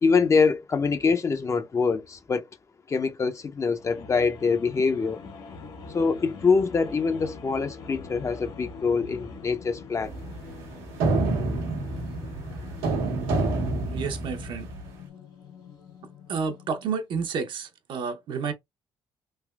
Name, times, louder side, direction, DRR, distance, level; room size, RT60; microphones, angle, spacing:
voice 1, 0.0-2.5 2.9-5.2 5.9-10.1, left 5 dB, 35° left, 0.5 m, -24 dB
sound 1, 3.7-17.0, left 4 dB, 60° left, 1.3 m, -44 dB
sound 2, 10.0-14.9, right 3 dB, 90° right, 1.0 m, -28 dB
voice 2, 13.9-14.7 16.3-18.5, right 5 dB, 60° right, 0.7 m, -30 dB
3.3 x 2.8 x 2.3 m
supercardioid pair, 80°, 9 cm